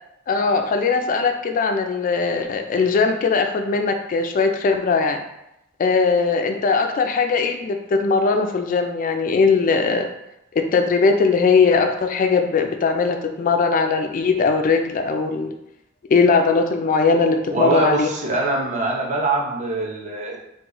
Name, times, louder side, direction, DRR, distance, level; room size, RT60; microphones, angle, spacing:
voice 1, 0.3-5.2 5.8-10.1 10.5-15.5 16.1-18.1, left 4 dB, 40° left, 5 dB, 0.3 m, -19 dB
voice 2, 17.5-20.4, right 2 dB, 40° right, -2 dB, 0.7 m, -23 dB
3.6 x 2.3 x 2.9 m, 0.84 s
head